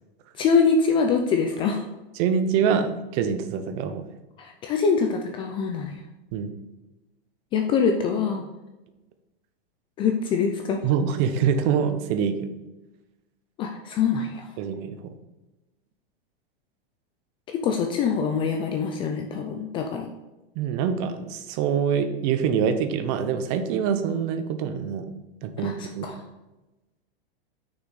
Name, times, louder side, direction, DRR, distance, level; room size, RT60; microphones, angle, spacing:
voice 1, 0.4-1.8 4.4-6.0 7.5-8.4 10.0-10.8 13.6-14.5 17.5-20.1 25.6-26.2, left 5 dB, 15° left, 3 dB, 0.3 m, -24 dB
voice 2, 2.2-4.0 6.3-6.5 10.8-12.5 14.6-15.1 20.6-25.1 25.4-26.1, right 7 dB, 40° right, 9 dB, 0.7 m, -25 dB
6.2 x 6.2 x 4.0 m, 1.1 s
supercardioid pair, 150°, 30 cm